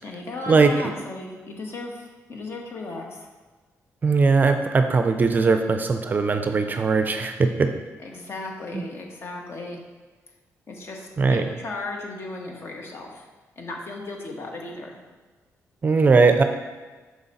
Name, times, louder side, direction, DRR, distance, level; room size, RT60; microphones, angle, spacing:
voice 1, 0.0-3.3 8.0-9.8 10.7-13.3 13.6-15.0, left 2 dB, 50° left, 1 dB, 1.3 m, -36 dB
voice 2, 4.0-7.7 8.7-8.8 11.2-11.4 15.8-16.4, right 4 dB, 35° right, 7 dB, 0.5 m, -19 dB
6.3 x 5.1 x 4.1 m, 1.3 s
cardioid pair, 115°, 6 cm